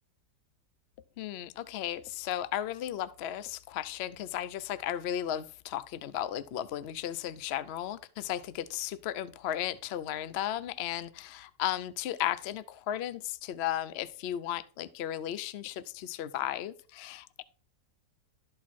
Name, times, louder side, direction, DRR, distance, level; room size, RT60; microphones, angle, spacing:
voice 1, 1.2-17.4, left 11 dB, 65° left, 0.6 m, -35 dB
12.5 x 4.5 x 4.2 m
omnidirectional pair, 1.7 m